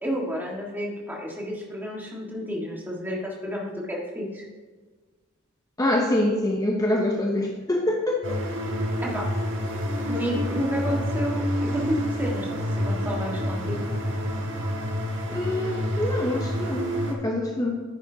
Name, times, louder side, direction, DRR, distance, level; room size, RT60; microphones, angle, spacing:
voice 1, 0.0-4.4 9.0-9.3 10.0-11.4 11.7-12.6 12.8-13.8, equal, 10° right, -3 dB, 1.7 m, -31 dB
voice 2, 5.8-8.4 15.3-17.8, left 1 dB, 15° left, 1 dB, 0.7 m, -25 dB
sound 1, 8.2-17.1, equal, 60° right, 1.4 m, -28 dB
9.9 x 9.8 x 2.8 m, 1.3 s
head